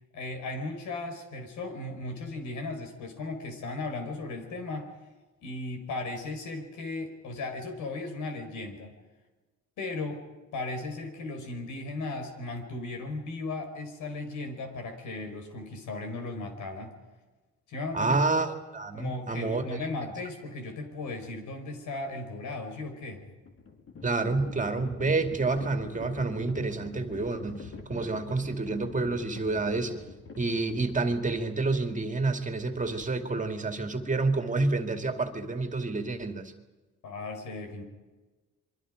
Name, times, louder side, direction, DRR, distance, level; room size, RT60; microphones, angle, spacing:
voice 1, 0.1-4.9 5.4-8.9 9.8-10.2 10.5-16.9 17.7-18.2 18.9-23.3 37.0-37.8, left 2 dB, 80° left, 5 dB, 5.0 m, -36 dB
voice 2, 17.9-19.8 24.0-30.0 30.4-36.5, right 3 dB, 25° right, 6 dB, 2.4 m, -29 dB
Livestock farm animals working animals, 23.2-32.1, left 4 dB, 45° left, 3.2 m, -45 dB
28.0 x 23.5 x 5.2 m, 1.2 s
cardioid pair, 90°, 30 cm